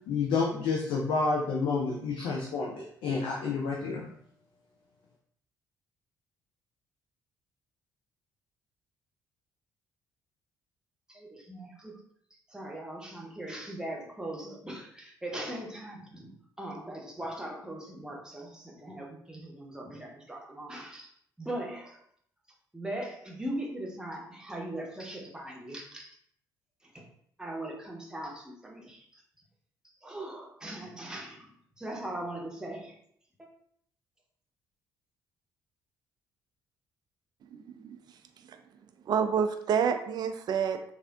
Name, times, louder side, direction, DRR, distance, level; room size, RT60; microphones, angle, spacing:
voice 1, 0.1-4.1, left 4 dB, 60° left, -2 dB, 0.5 m, -29 dB
voice 2, 11.1-11.9 12.5-16.3 16.6-21.1 21.4-22.0 22.7-26.1 27.4-29.1 30.0-31.5 31.8-32.9, right 1 dB, 5° right, -1 dB, 0.8 m, -39 dB
voice 3, 37.5-38.0 38.5-38.6 39.1-40.9, right 7 dB, 45° right, 7 dB, 0.3 m, -28 dB
3.4 x 2.4 x 2.3 m, 0.67 s
figure-of-eight pair, 45°, 10 cm